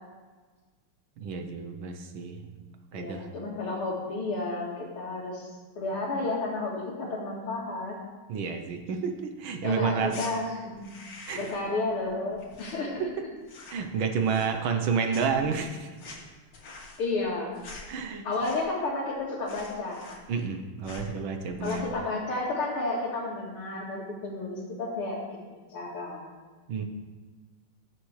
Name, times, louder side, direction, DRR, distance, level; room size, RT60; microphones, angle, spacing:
voice 1, 1.2-2.4 2.9-3.3 8.3-10.1 11.3-11.4 13.7-15.9 17.9-18.2 20.3-21.9 26.7-26.8, right 5 dB, 75° right, 5 dB, 1.7 m, -30 dB
voice 2, 2.9-5.5 5.8-8.0 9.6-10.9 11.3-13.1 17.0-17.5 18.2-20.0 21.6-25.2 25.7-26.3, left 2 dB, 85° left, -8 dB, 2.6 m, -32 dB
sound 1, 10.1-10.3 10.7-11.7 12.0-13.2 13.4-13.9 14.2-14.8 15.1-18.9 19.2-19.3 19.5-20.6 20.8-21.1 21.5-22.0, left 3 dB, 70° left, 2.5 m, -46 dB
19.0 x 7.2 x 3.2 m, 1.4 s
omnidirectional pair, 2.3 m